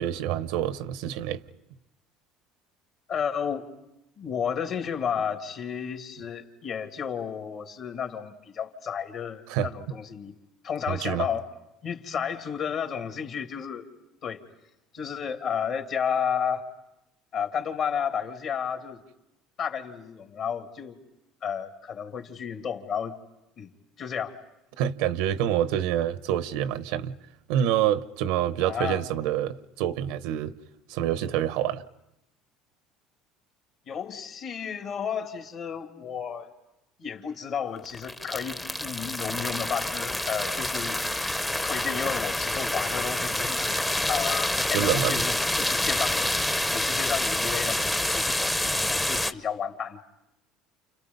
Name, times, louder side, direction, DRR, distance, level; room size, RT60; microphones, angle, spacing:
voice 1, 0.0-1.4 9.5-9.7 10.9-11.3 24.8-27.1 27.5-30.5 30.9-31.8 44.7-45.2, right 11 dB, 80° right, 0.9 m, -27 dB
voice 2, 3.1-3.7 4.2-10.4 10.6-11.5 11.8-13.9 14.2-14.4 14.9-16.7 17.3-19.0 19.6-21.0 21.4-23.2 23.6-24.4 28.6-29.0 33.9-36.5 37.0-50.0, left 7 dB, 50° left, 2.5 m, -32 dB
sound 1, 37.8-49.3, left 1 dB, 10° left, 0.9 m, -27 dB
30.0 x 29.5 x 5.4 m
cardioid pair, 120°, 0 cm